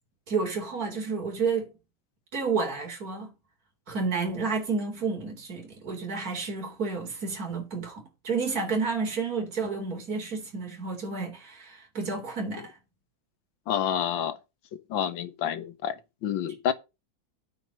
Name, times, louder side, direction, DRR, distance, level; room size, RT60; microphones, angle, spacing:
voice 1, 0.3-1.7 2.3-3.3 3.9-12.8, right 4 dB, 45° right, 4.2 m, -30 dB
voice 2, 13.7-14.4 14.9-16.7, left 9 dB, 75° left, 1.8 m, -29 dB
9.1 x 6.1 x 7.5 m
omnidirectional pair, 2.2 m